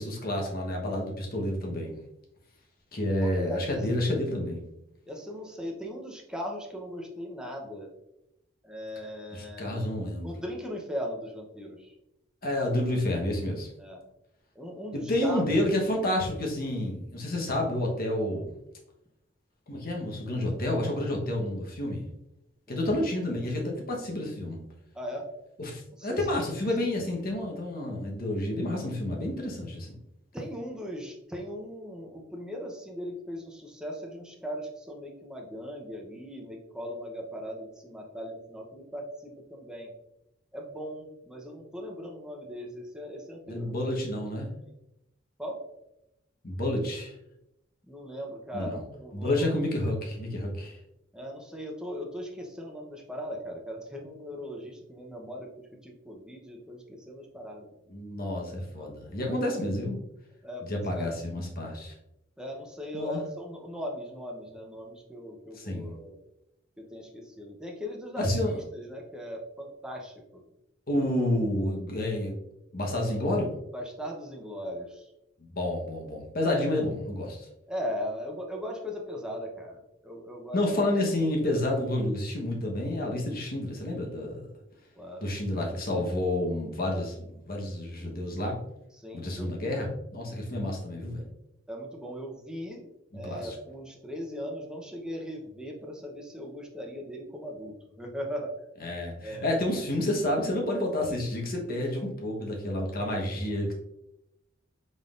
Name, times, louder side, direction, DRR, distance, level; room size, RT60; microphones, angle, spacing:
voice 1, 0.0-2.0 2.9-4.6 9.3-10.4 12.4-13.7 15.1-18.5 19.7-22.0 22.7-24.6 25.6-30.0 43.5-44.5 46.4-47.1 48.5-48.8 49.1-50.8 57.9-60.0 60.6-61.9 62.9-63.2 65.5-65.9 68.2-68.6 70.9-72.4 72.7-73.5 75.4-77.5 80.5-84.5 85.2-88.6 89.1-91.3 93.1-93.5 98.8-103.7, left 1 dB, 50° left, 0 dB, 1.1 m, -29 dB
voice 2, 3.4-3.8 5.0-7.9 8.6-9.8 10.2-11.9 13.8-14.0 14.6-15.5 22.7-22.8 24.9-25.3 25.9-26.4 30.3-39.9 40.5-43.7 44.6-44.7 45.4-45.6 47.9-49.5 51.1-57.7 58.8-58.9 59.2-59.4 60.4-61.1 62.4-66.2 66.8-70.4 73.7-75.0 77.7-80.6 85.0-85.3 89.0-89.5 90.3-90.7 91.7-92.8 93.1-98.5 99.2-99.6, equal, 5° right, 0 dB, 0.8 m, -39 dB
5.3 x 3.9 x 2.5 m, 0.84 s
head